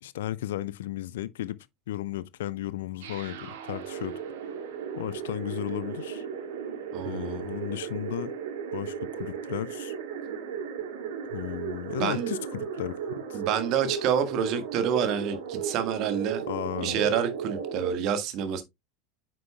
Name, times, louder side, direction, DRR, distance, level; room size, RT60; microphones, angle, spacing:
voice 1, 0.0-1.6 1.9-4.2 5.0-6.3 7.0-8.3 8.7-10.0 11.3-13.4 16.5-17.0, left 14 dB, 65° left, 0.4 m, -34 dB
sound 1, 3.0-17.9, right 7 dB, 60° right, 2.1 m, -35 dB
voice 2, 6.9-7.5 12.0-12.3 13.3-16.4 16.8-18.6, right 8 dB, 45° right, 1.5 m, -28 dB
9.3 x 6.0 x 2.2 m
figure-of-eight pair, 75°, 0 cm